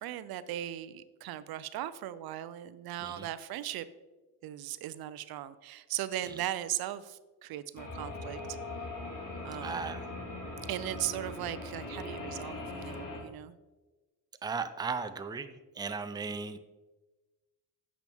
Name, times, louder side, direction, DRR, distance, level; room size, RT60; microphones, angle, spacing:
voice 1, 0.0-3.8 4.4-8.4 9.4-9.9 10.7-13.5, right 12 dB, 75° right, 14 dB, 0.5 m, -38 dB
sound 1, 7.8-13.2, left 2 dB, 55° left, 2.1 m, -40 dB
voice 2, 9.6-10.1 14.4-16.6, right 5 dB, 10° right, 10 dB, 0.4 m, -36 dB
8.2 x 6.1 x 3.5 m, 1.2 s
cardioid pair, 85°, 37 cm